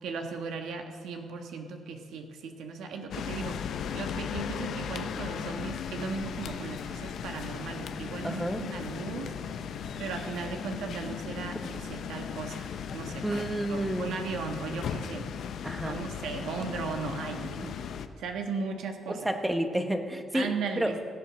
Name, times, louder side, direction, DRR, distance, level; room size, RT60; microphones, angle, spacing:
voice 1, 0.0-9.3 10.0-15.3 15.8-17.8 18.2-19.3 20.3-21.1, right 4 dB, 80° right, 4 dB, 1.5 m, -37 dB
sound 1, 3.1-18.1, left 7 dB, 70° left, 0.7 m, -37 dB
voice 2, 8.2-8.6 13.2-14.1 15.6-16.0 19.1-20.9, right 1 dB, 10° right, 6 dB, 1.2 m, -30 dB
17.0 x 7.2 x 6.4 m, 2.1 s
cardioid pair, 90°, 0 cm